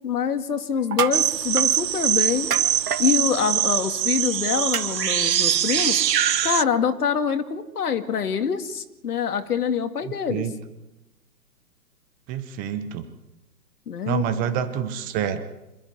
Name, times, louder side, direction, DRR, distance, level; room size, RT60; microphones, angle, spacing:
voice 1, 0.0-2.5 3.0-6.0 6.4-10.5 13.9-14.2, left 7 dB, 65° left, 8 dB, 2.3 m, -25 dB
sound 1, 0.8-1.2 1.6-1.7 2.5-3.0 4.7-4.9 5.8-5.9, right 8 dB, 65° right, 2.0 m, -26 dB
sound 2, 1.1-6.6, right 10 dB, 90° right, 0.6 m, -23 dB
voice 2, 10.0-10.5 12.3-13.1 14.1-15.4, right 9 dB, 15° right, 10 dB, 1.0 m, -27 dB
26.0 x 13.5 x 8.2 m, 0.98 s
hypercardioid pair, 135°, 49 cm